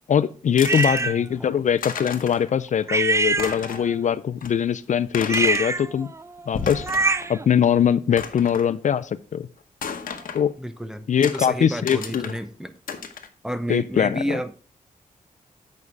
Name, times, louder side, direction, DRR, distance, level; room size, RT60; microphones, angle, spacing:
voice 1, 0.1-6.1 6.5-6.9 7.3-9.5 10.3-10.5 11.1-12.3 13.7-14.4, left 8 dB, 60° left, 0.4 m, -22 dB
sound 1, 0.6-1.0 1.5-1.6 1.8-2.5 2.8-2.9 3.3-3.9 4.4-4.5 5.1-5.7 6.4-7.3 7.6-7.7 8.2-8.7 9.8-10.4 11.2-11.4 11.9-12.4 12.9-13.3, left 6 dB, 85° left, 1.0 m, -33 dB
sound 2, 0.6-1.2 2.9-4.0 5.2-7.5, right 3 dB, 20° right, 0.4 m, -24 dB
voice 2, 0.7-1.5 8.1-8.2 10.6-12.7 13.4-14.5, equal, 5° right, 0.8 m, -31 dB
8.5 x 5.4 x 4.7 m
wide cardioid pair, 90°, 14 cm